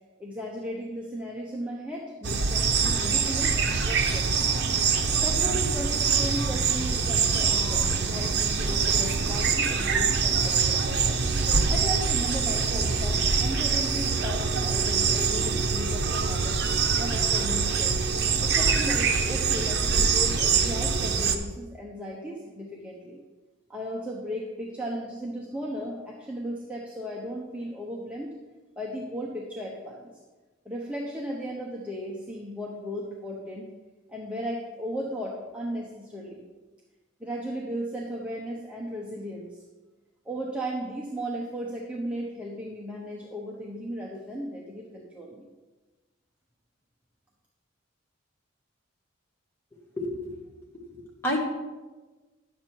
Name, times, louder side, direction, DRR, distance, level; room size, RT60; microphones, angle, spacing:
voice 1, 0.2-4.5 5.2-10.9 11.7-16.6 17.0-18.0 18.4-23.2 23.7-28.3 28.8-30.1 30.6-33.7 34.1-36.4 37.2-39.5 40.3-45.5, equal, 5° right, -3 dB, 0.8 m, -36 dB
sound 1, 2.2-21.4, right 5 dB, 55° right, 0.8 m, -24 dB
voice 2, 50.0-50.4 50.9-51.4, left 1 dB, 10° left, -2 dB, 1.6 m, -30 dB
10.5 x 7.4 x 4.5 m, 1.2 s
head